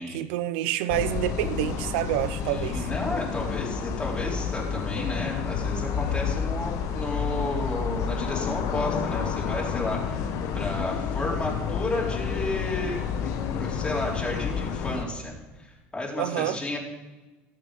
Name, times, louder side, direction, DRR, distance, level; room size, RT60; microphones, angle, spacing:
voice 1, 0.1-2.9 16.2-16.6, right 13 dB, 80° right, 0.6 m, -28 dB
sound 1, 0.9-15.0, left 7 dB, 70° left, 1.3 m, -30 dB
voice 2, 2.4-16.8, left 1 dB, 15° left, 4.2 m, -32 dB
14.0 x 7.8 x 5.3 m
hypercardioid pair, 80°, 6 cm